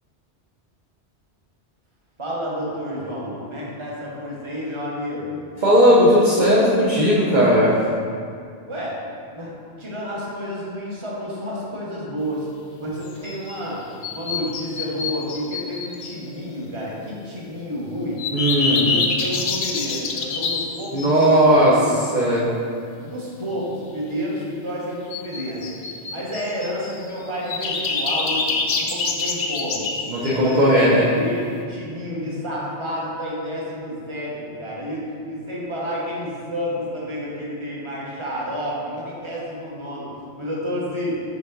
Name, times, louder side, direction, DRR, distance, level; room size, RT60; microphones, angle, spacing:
voice 1, 2.2-5.4 8.7-9.0 9.3-12.5 12.8-13.8 14.1-18.2 18.6-22.0 23.0-25.6 26.1-29.9 30.3-41.2, equal, 25° right, -5 dB, 1.2 m, -30 dB
voice 2, 5.6-7.7 18.3-18.9 20.9-21.8 22.1-22.5 30.1-31.0, equal, 45° right, -7 dB, 0.9 m, -16 dB
sound 1, 13.0-13.5 14.0-16.1 18.2-21.4 25.1-27.0 27.5-30.8, left 4 dB, 60° left, 0.7 m, -26 dB
5.3 x 5.1 x 3.8 m, 2.3 s
omnidirectional pair, 1.2 m